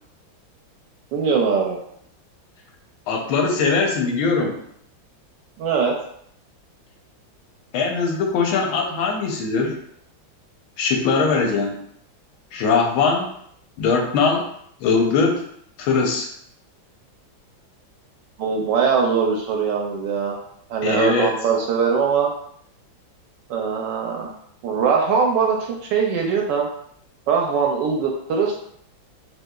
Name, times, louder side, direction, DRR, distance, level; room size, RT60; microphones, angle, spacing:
voice 1, 1.1-1.8 5.6-5.9 18.4-20.4 20.7-22.3 23.5-24.3 24.6-26.7 27.3-28.6, right 6 dB, 70° right, 0 dB, 1.2 m, -21 dB
voice 2, 3.1-4.6 7.7-9.8 10.8-11.8 12.5-13.3 13.8-14.4 14.8-15.4 15.8-16.3 20.8-21.4, left 4 dB, 90° left, 1 dB, 1.5 m, -21 dB
4.5 x 2.3 x 2.3 m, 0.68 s
omnidirectional pair, 2.2 m